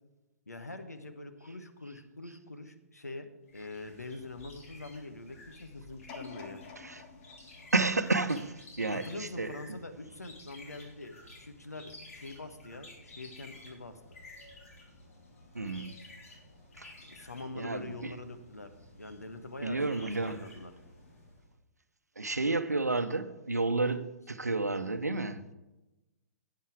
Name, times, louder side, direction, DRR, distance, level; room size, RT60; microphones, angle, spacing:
voice 1, 0.5-6.6 8.9-14.0 17.1-18.7 19.0-20.7, left 2 dB, 85° left, 1.2 m, -44 dB
sound 1, 3.5-21.5, left 2 dB, 60° left, 3.7 m, -53 dB
sound 2, 6.1-9.1 9.7-9.8, left 5 dB, 35° left, 1.5 m, -50 dB
voice 2, 7.7-9.8 15.5-16.0 16.8-16.9 17.5-18.1 19.6-20.5 22.2-25.5, right 3 dB, 85° right, 0.8 m, -31 dB
11.0 x 9.3 x 4.7 m
figure-of-eight pair, 120°, 9 cm